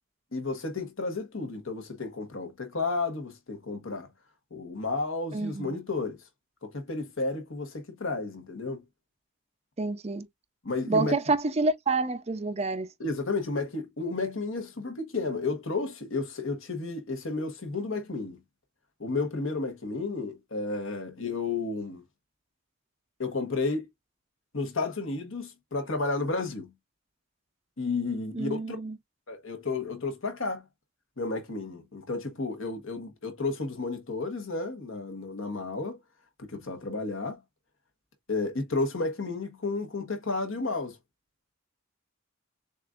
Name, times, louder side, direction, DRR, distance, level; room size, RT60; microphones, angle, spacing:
voice 1, 0.3-4.1 4.5-6.2 6.6-8.8 10.6-11.1 13.0-18.4 19.0-22.0 23.2-23.9 24.5-26.7 27.8-28.8 29.3-30.6 31.2-36.0 36.4-37.4 38.3-41.0, left 3 dB, 65° left, 1.3 m, -32 dB
voice 2, 5.3-5.8 9.8-10.3 10.9-12.9 28.3-29.0, right 3 dB, 30° right, 0.5 m, -28 dB
6.7 x 2.5 x 2.4 m
head